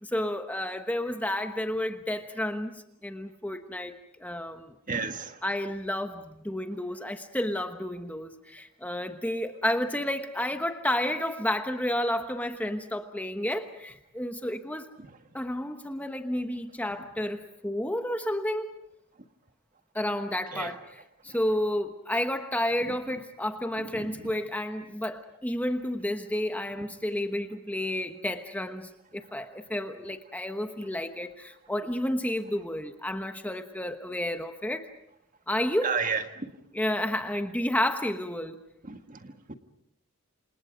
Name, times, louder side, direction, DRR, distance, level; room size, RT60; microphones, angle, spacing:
voice 1, 0.0-3.9 4.2-4.7 5.4-14.9 15.3-18.8 19.9-34.9 35.5-36.0 36.7-38.6, left 1 dB, 5° left, 6 dB, 1.1 m, -31 dB
voice 2, 4.9-5.4 20.5-20.7 23.9-24.3 35.8-36.5 38.9-39.5, right 5 dB, 35° right, 7 dB, 1.6 m, -32 dB
28.5 x 27.0 x 5.1 m, 0.75 s
head